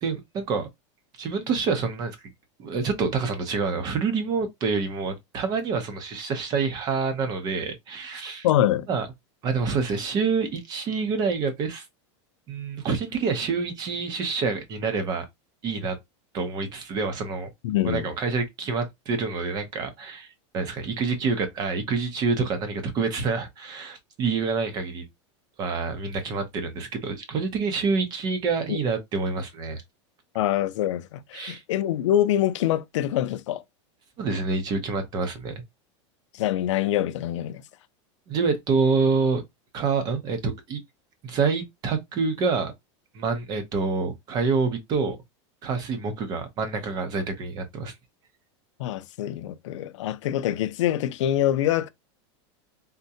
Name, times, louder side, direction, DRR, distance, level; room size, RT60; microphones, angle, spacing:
voice 1, 0.0-0.7 1.2-2.2 2.6-8.5 8.9-9.1 9.4-11.8 12.5-15.2 15.6-16.0 16.3-17.5 17.8-20.3 20.5-25.1 25.6-29.8 31.3-31.6 34.2-35.6 38.3-39.4 39.7-40.8 41.2-42.7 43.1-45.2 45.6-47.9, right 4 dB, 25° right, 0.7 m, -27 dB
voice 2, 8.4-8.9 17.6-18.1 28.7-28.8 30.3-33.6 36.3-37.6 48.8-51.9, left 12 dB, 85° left, 0.5 m, -25 dB
3.6 x 2.1 x 2.7 m
supercardioid pair, 165°, 15 cm